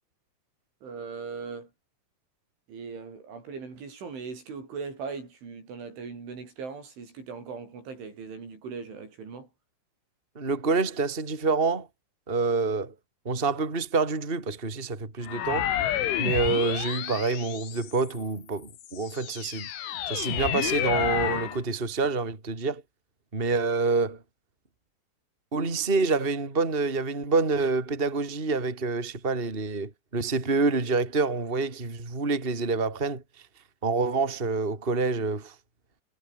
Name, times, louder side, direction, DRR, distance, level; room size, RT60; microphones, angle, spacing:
voice 1, 0.8-1.7 2.7-9.5, right 5 dB, 80° right, 9.8 m, -39 dB
voice 2, 10.4-11.9 12.3-12.9 13.3-15.7 16.2-19.7 20.1-22.8 23.3-24.2 25.5-33.2 33.8-35.5, right 4 dB, 15° right, 3.4 m, -27 dB
sound 1, 15.2-18.2 18.8-21.6, left 11 dB, 80° left, 4.6 m, -30 dB
omnidirectional pair, 5.4 m